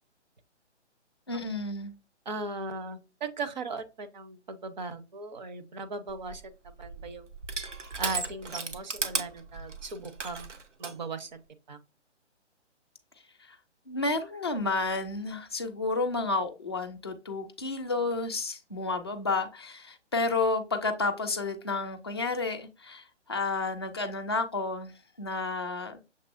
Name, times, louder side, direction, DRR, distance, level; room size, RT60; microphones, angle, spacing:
voice 1, 1.3-1.9 13.4-13.6 13.9-26.0, left 3 dB, 25° left, 0.4 m, -31 dB
voice 2, 2.3-7.3 8.0-10.5 10.8-11.4 11.7-11.8, right 3 dB, 40° right, 0.6 m, -38 dB
Crushing, 6.1-11.0, right 4 dB, 80° right, 1.1 m, -36 dB
6.6 x 3.1 x 2.4 m
hypercardioid pair, 150°, 36 cm